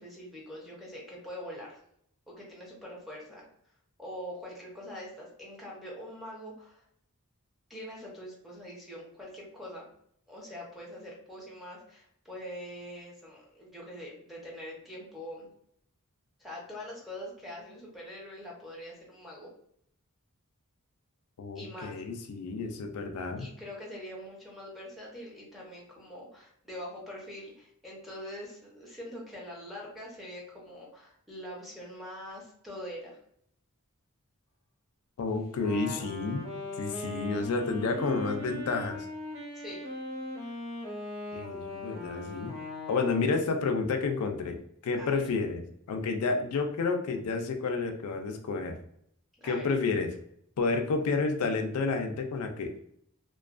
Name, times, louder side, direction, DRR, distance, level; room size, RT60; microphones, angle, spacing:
voice 1, 0.0-1.8 2.3-3.4 4.0-6.8 7.7-9.9 10.3-15.5 16.4-19.5 21.5-21.9 23.4-33.2 39.5-39.9 45.0-45.2 49.4-49.7, equal, ahead, -5 dB, 0.7 m, -43 dB
voice 2, 21.4-23.5 35.2-36.5 36.8-39.1 41.3-42.5 42.9-48.8 49.4-50.1 50.6-52.7, left 4 dB, 85° left, 5 dB, 0.4 m, -30 dB
Wind instrument woodwind instrument, 35.5-43.5, left 1 dB, 65° right, 1.1 m, -39 dB
2.4 x 2.2 x 2.4 m, 0.68 s
head